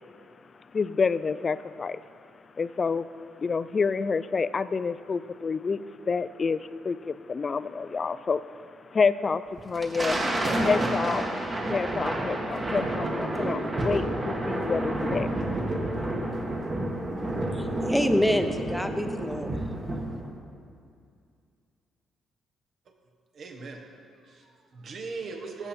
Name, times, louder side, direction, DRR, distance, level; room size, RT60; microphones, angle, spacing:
voice 1, 0.2-2.0 2.5-3.1 3.4-10.2 10.6-11.2 11.7-16.3, left 5 dB, 40° left, 0.3 m, -29 dB
Thunder, 9.6-20.3, right 1 dB, 30° right, 1.4 m, -29 dB
voice 2, 17.3-19.6, equal, 5° left, 0.7 m, -27 dB
voice 3, 23.3-23.8 24.1-25.7, right 4 dB, 55° right, 1.3 m, -39 dB
13.5 x 8.1 x 4.3 m
cardioid pair, 90°, 0 cm